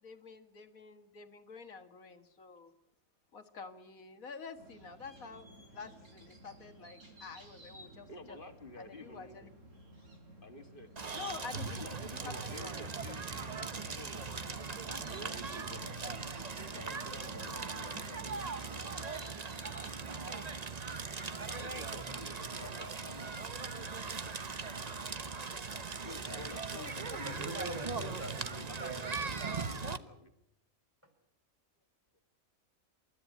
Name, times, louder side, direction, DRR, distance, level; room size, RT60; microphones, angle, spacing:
voice 1, 0.0-2.7 3.3-5.5 5.7-8.4 8.8-9.5 11.1-11.8 12.2-12.9 21.2-21.5 22.8-22.9 26.2-26.4 26.7-26.9, left 5 dB, 80° left, 8 dB, 2.3 m, -48 dB
sound 1, 4.5-20.1, right 1 dB, 65° right, 4.6 m, -55 dB
voice 2, 8.1-9.4 10.4-10.9 11.6-14.4 15.0-19.2 21.5-24.0 25.5-25.6 26.0-27.6 28.7-30.3, left 2 dB, 40° left, 7 dB, 2.5 m, -51 dB
Crackle, 11.0-30.0, right 4 dB, 30° right, 1.0 m, -40 dB
voice 3, 27.2-29.0, right 2 dB, 10° right, 2 dB, 5.3 m, -43 dB
28.0 x 13.5 x 9.4 m, 0.82 s
omnidirectional pair, 1.4 m